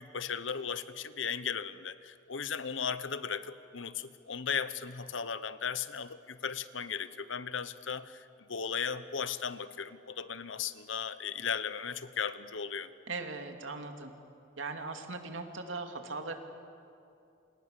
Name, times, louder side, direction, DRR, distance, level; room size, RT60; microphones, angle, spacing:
voice 1, 0.0-12.9, left 6 dB, 80° left, 13 dB, 1.1 m, -36 dB
voice 2, 13.1-14.1 14.6-16.3, right 3 dB, 80° right, 4 dB, 2.7 m, -39 dB
29.0 x 28.0 x 6.9 m, 2.6 s
head